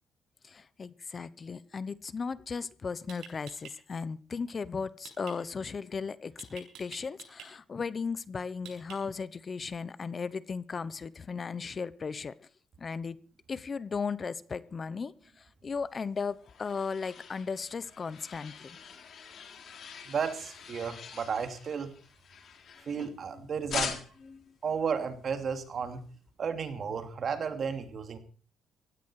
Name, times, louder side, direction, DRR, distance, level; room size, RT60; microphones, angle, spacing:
voice 1, 0.4-12.5 12.8-13.2 13.5-18.8 23.3-23.5 24.2-24.5, left 5 dB, 40° left, 17 dB, 0.9 m, -36 dB
sound 1, 2.5-2.6 3.1-3.7 5.0-5.3 6.4-7.5 8.6-9.2, right 8 dB, 85° right, 6.8 m, -47 dB
sound 2, 16.0-23.3 23.7-24.4, left 7 dB, 60° left, 3.3 m, -42 dB
voice 2, 20.1-21.9 22.9-24.0 24.6-26.0 26.4-28.2, right 6 dB, 50° right, 7 dB, 2.7 m, -33 dB
16.0 x 15.5 x 4.8 m, 0.40 s
cardioid pair, 90°, 0 cm